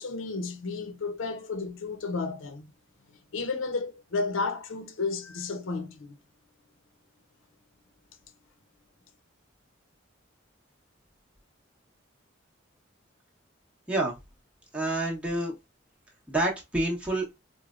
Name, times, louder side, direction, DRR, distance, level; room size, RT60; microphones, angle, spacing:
voice 1, 0.0-2.7 3.3-6.2, left 4 dB, 85° left, 0.7 m, -32 dB
voice 2, 14.7-15.5 16.3-17.3, right 2 dB, 5° right, 1.0 m, -28 dB
4.7 x 2.1 x 2.4 m
head